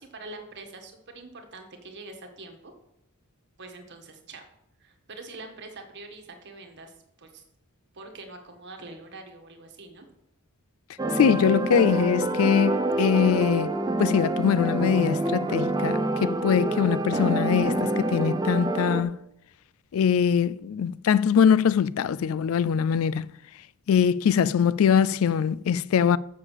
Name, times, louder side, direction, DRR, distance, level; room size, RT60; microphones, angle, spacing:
voice 1, 0.0-2.7 3.6-4.4 4.8-7.4 7.9-10.1, right 3 dB, 55° right, 1.7 m, -44 dB
sound 1, 11.0-19.0, right 2 dB, 20° right, 0.6 m, -27 dB
voice 2, 11.1-13.7 14.0-19.2 19.9-23.3 23.9-26.2, left 7 dB, 70° left, 0.3 m, -22 dB
7.3 x 7.0 x 6.6 m
head